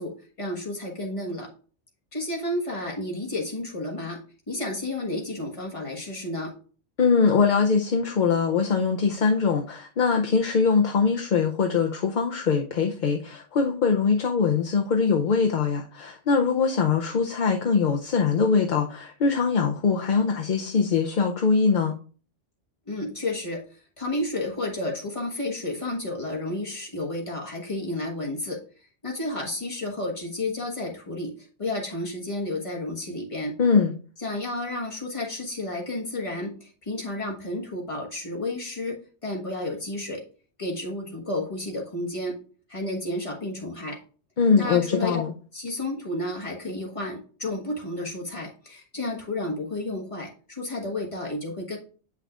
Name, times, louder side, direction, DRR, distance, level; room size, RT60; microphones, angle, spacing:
voice 1, 0.0-1.5 2.1-4.2 4.5-6.5 22.9-28.6 29.0-31.3 31.6-33.6 34.2-40.2 40.6-42.4 42.7-44.0 44.6-45.2 45.5-51.8, left 1 dB, 30° left, -1 dB, 1.5 m, -31 dB
voice 2, 7.0-21.9 33.6-33.9 44.4-45.3, left 5 dB, 50° left, 2 dB, 0.7 m, -22 dB
8.5 x 5.7 x 2.4 m, 0.39 s
omnidirectional pair, 1.2 m